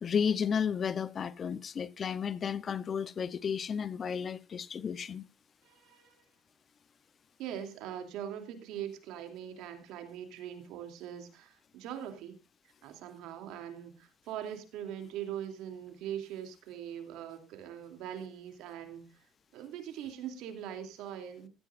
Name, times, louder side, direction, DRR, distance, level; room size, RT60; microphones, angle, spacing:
voice 1, 0.0-5.2, left 7 dB, 40° left, 0.7 m, -33 dB
voice 2, 5.6-6.2 7.4-12.4 12.8-19.2 19.5-21.5, right 10 dB, 75° right, 2.7 m, -42 dB
16.0 x 14.5 x 2.5 m
cardioid pair, 100°, 0 cm